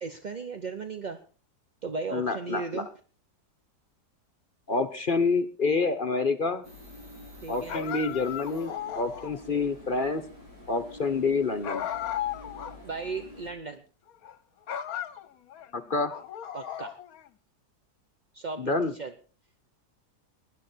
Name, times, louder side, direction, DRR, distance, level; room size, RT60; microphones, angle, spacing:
voice 1, 0.0-1.2 1.8-2.9 7.4-7.8 12.8-13.8 16.5-17.0 18.3-19.1, right 4 dB, 35° right, 8 dB, 0.8 m, -36 dB
voice 2, 2.1-2.8 4.7-6.6 7.5-10.2 10.7-11.8 15.7-16.1 18.6-18.9, left 4 dB, 35° left, 9 dB, 1.0 m, -28 dB
sound 1, 6.6-13.5, left 1 dB, 85° right, 6.3 m, -48 dB
sound 2, 7.7-9.5 11.6-12.8 13.1-13.2 14.1-14.4 14.7-15.7 16.1-17.3, left 10 dB, 65° left, 1.3 m, -35 dB
19.5 x 11.0 x 4.5 m, 0.38 s
omnidirectional pair, 1.8 m